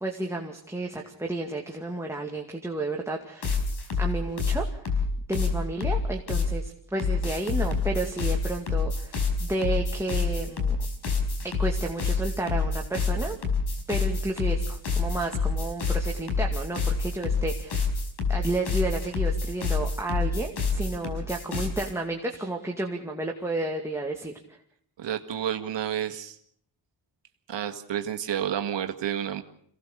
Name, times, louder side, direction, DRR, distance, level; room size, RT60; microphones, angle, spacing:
voice 1, 0.0-3.6 4.0-5.0 5.3-10.8 11.4-13.4 13.9-17.9 18.3-24.6, right 2 dB, 5° right, 0 dB, 2.3 m, -32 dB
sound 1, 3.4-6.5 7.0-21.9, left 4 dB, 65° left, 5.4 m, -27 dB
voice 2, 25.0-26.4 27.5-29.4, right 9 dB, 80° right, 6 dB, 1.8 m, -30 dB
27.0 x 18.0 x 6.7 m, 0.67 s
cardioid pair, 110°, 43 cm